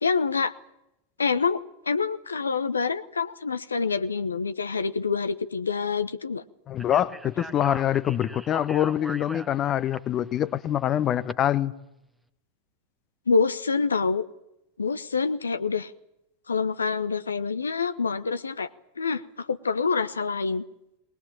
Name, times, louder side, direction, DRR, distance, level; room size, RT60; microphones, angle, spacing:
voice 1, 0.0-0.5 1.2-6.4 13.3-14.2 14.8-15.9 16.5-18.7 19.0-20.6, left 5 dB, 75° left, 1.0 m, -26 dB
voice 2, 6.7-11.7, left 11 dB, 30° left, 0.9 m, -25 dB
Speech, 6.8-11.3, right 1 dB, 5° right, 1.4 m, -41 dB
20.5 x 20.5 x 8.8 m
figure-of-eight pair, 90°, 0 cm